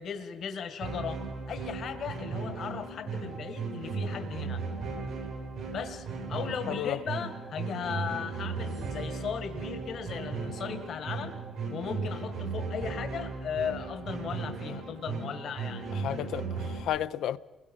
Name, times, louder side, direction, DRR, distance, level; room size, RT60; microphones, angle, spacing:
voice 1, 0.0-4.6 5.7-11.4 11.7-15.9, left 7 dB, 65° left, 1.8 m, -37 dB
sound 1, 0.8-16.8, right 4 dB, 80° right, 6.3 m, -36 dB
voice 2, 16.0-17.4, left 11 dB, 80° left, 0.6 m, -32 dB
28.0 x 21.5 x 5.5 m
cardioid pair, 90°, 0 cm